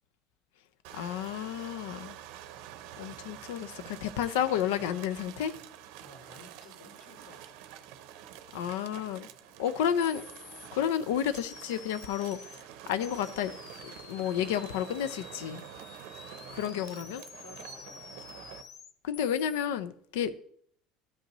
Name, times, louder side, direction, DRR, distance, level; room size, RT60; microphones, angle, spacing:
sound 1, 0.8-18.6, right 11 dB, 60° right, 0.6 m, -47 dB
voice 1, 0.9-2.2 3.0-5.5 8.5-9.3 9.6-10.2 10.7-13.5 13.8-15.6 16.5-17.2 19.0-20.3, left 9 dB, 85° left, 0.6 m, -31 dB
voice 2, 6.0-7.6 16.3-18.0, left 2 dB, 60° left, 2.8 m, -54 dB
sound 2, 9.6-9.7 10.0-10.7 11.3-12.6 13.0-19.7, left 7 dB, 30° left, 0.5 m, -50 dB
13.0 x 5.4 x 3.0 m
cardioid pair, 180°, 0 cm